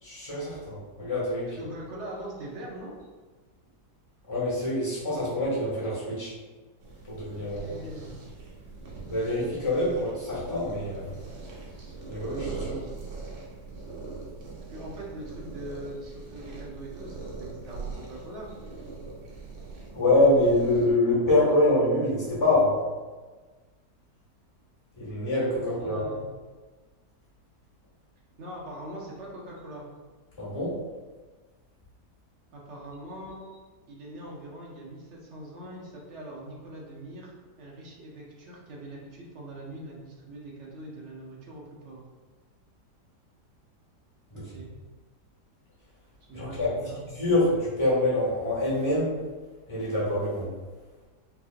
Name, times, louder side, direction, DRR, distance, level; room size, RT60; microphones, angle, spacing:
voice 1, 0.0-1.6 4.3-6.3 7.0-7.7 9.1-11.1 12.1-12.8 19.9-22.8 25.0-26.1 30.4-30.8 44.3-44.4 46.3-49.2 49.7-50.5, left 1 dB, 20° left, -8 dB, 0.9 m, -25 dB
voice 2, 1.6-2.9 7.4-8.2 12.6-12.8 14.7-18.5 25.5-26.3 28.4-29.9 32.5-33.4 33.9-42.1 44.3-44.7 46.3-47.0, right 1 dB, 50° right, -3 dB, 0.9 m, -42 dB
sound 1, 6.8-20.9, right 3 dB, 90° right, 1.5 m, -41 dB
4.7 x 2.7 x 2.5 m, 1.3 s
omnidirectional pair, 1.8 m